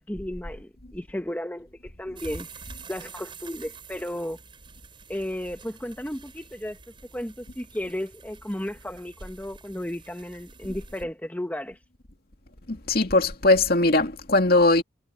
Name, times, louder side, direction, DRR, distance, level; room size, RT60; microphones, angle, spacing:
voice 1, 0.0-2.5 2.9-4.4 5.1-6.8 7.1-11.8, left 1 dB, 10° left, 1.0 m, -34 dB
sound 1, 2.2-11.0, right 5 dB, 25° right, 7.8 m, -48 dB
voice 2, 12.7-14.8, left 2 dB, 55° left, 2.5 m, -20 dB
head